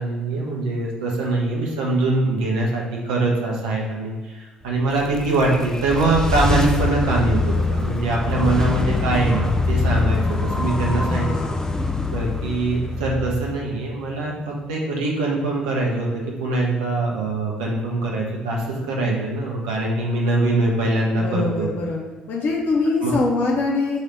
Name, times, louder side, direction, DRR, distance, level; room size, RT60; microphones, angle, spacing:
voice 1, 0.0-11.5 12.1-21.7 23.0-23.1, right 2 dB, 70° right, -2 dB, 1.2 m, -23 dB
sound 1, 4.7-14.0, left 3 dB, 15° left, 0.6 m, -24 dB
voice 2, 11.0-11.8 21.2-22.0 22.3-24.0, left 3 dB, 55° left, -2 dB, 1.3 m, -23 dB
5.4 x 3.4 x 5.4 m, 1.3 s
figure-of-eight pair, 50°, 4 cm